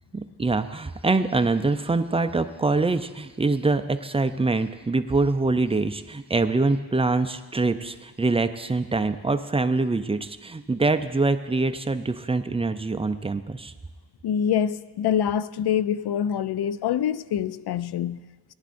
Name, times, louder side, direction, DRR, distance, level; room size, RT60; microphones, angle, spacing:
voice 1, 0.1-13.7, right 3 dB, 15° right, 0.4 m, -24 dB
voice 2, 14.2-18.2, left 9 dB, 70° left, 0.5 m, -25 dB
18.5 x 10.5 x 2.5 m
wide cardioid pair, 110°, 41 cm